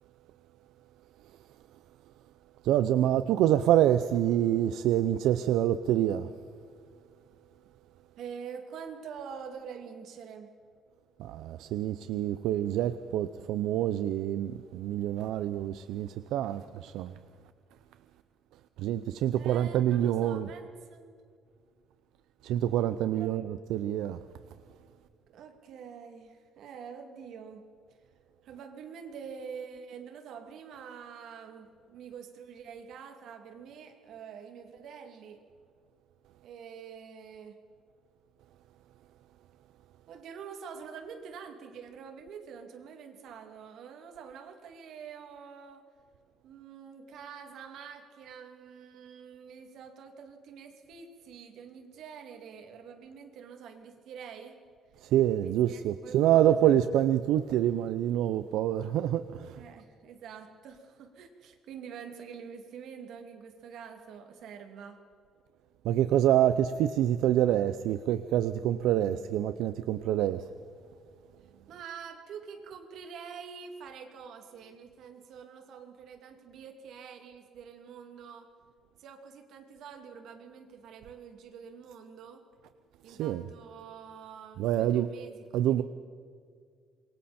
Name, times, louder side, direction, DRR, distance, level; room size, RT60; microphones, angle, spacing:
voice 1, 2.6-6.3 11.2-17.1 18.8-20.5 22.4-24.2 55.0-59.6 65.8-70.5 83.1-83.4 84.6-85.1 85.5-85.8, right 11 dB, 85° right, 0.7 m, -26 dB
voice 2, 8.2-10.6 19.3-21.2 23.1-23.4 25.3-27.7 28.4-35.4 36.4-37.6 40.1-45.9 46.4-54.6 55.4-56.8 59.6-65.1 71.7-78.5 79.0-82.5 83.0-85.8, right 6 dB, 60° right, 2.7 m, -46 dB
26.5 x 23.0 x 4.4 m
cardioid pair, 175°, 0 cm